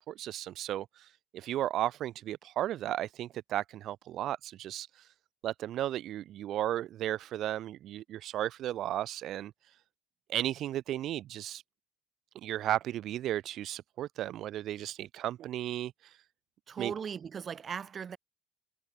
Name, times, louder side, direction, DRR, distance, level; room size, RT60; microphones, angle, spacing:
voice 1, 0.0-5.1 5.4-9.8 10.3-11.6 12.4-16.2 16.8-16.9, right 12 dB, 60° right, 0.7 m, -35 dB
voice 2, 16.7-18.2, right 7 dB, 40° right, 2.5 m, -38 dB
supercardioid pair, 95°, 0 cm